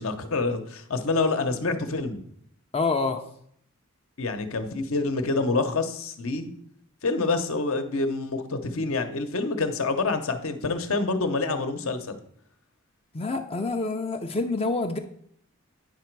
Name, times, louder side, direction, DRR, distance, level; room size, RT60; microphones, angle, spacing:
voice 1, 0.0-2.2 4.2-6.5 7.0-12.2, left 3 dB, 70° left, 7 dB, 0.8 m, -27 dB
voice 2, 2.7-3.2 13.1-15.0, left 3 dB, 25° left, 6 dB, 0.4 m, -27 dB
9.3 x 5.0 x 4.6 m, 0.67 s
head